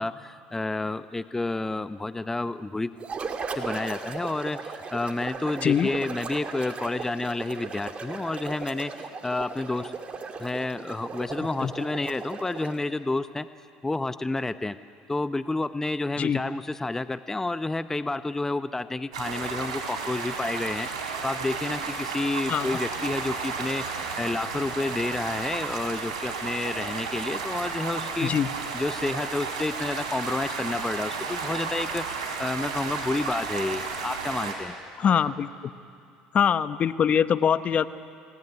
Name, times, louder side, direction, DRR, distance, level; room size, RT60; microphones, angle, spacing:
voice 1, 0.0-3.0 3.5-9.9 10.4-13.5 13.8-14.8 15.1-28.3 28.7-34.8, left 2 dB, 15° left, 12 dB, 0.8 m, -30 dB
sound 1, 3.0-12.9, right 4 dB, 35° right, 2.4 m, -37 dB
sound 2, 19.1-34.5, right 5 dB, 85° right, 4.2 m, -33 dB
voice 2, 35.0-35.5 36.3-37.9, left 8 dB, 45° left, 13 dB, 0.9 m, -23 dB
28.5 x 18.5 x 9.5 m, 2.4 s
hypercardioid pair, 75°, 3 cm